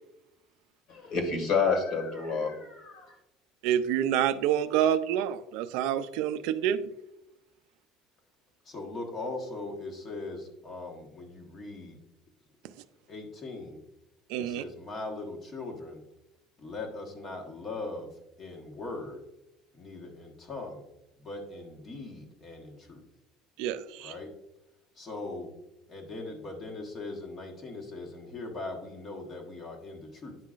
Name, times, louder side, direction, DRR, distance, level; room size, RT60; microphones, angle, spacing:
voice 1, 0.9-3.2, left 5 dB, 45° left, 5 dB, 1.8 m, -29 dB
voice 2, 3.6-6.8 14.3-14.6 23.6-24.1, right 10 dB, 70° right, 12 dB, 0.4 m, -27 dB
voice 3, 8.6-12.0 13.1-13.8 14.4-16.0 16.6-18.1 18.4-19.2 19.7-20.8 21.2-23.0 24.0-24.3 25.0-25.5 25.9-30.4, left 2 dB, 30° left, 1 dB, 1.3 m, -40 dB
9.5 x 5.6 x 2.4 m, 0.90 s
cardioid pair, 160°, 0 cm